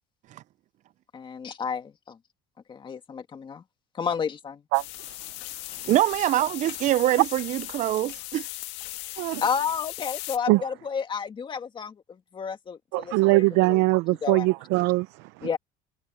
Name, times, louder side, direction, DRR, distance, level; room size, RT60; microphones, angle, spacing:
voice 1, 1.1-2.2 2.7-3.6 3.9-4.6 9.4-13.8 14.2-14.5 15.4-15.6, left 6 dB, 25° left, 2.2 m, -31 dB
sound 1, 4.7-10.4, left 18 dB, 75° left, 1.7 m, -38 dB
voice 2, 4.7-5.3 5.7-5.8 9.2-9.4 10.5-10.6 12.9-15.5, right 21 dB, 80° right, 0.7 m, -23 dB
voice 3, 5.8-8.5, right 14 dB, 40° right, 0.4 m, -24 dB
cardioid pair, 145°, 19 cm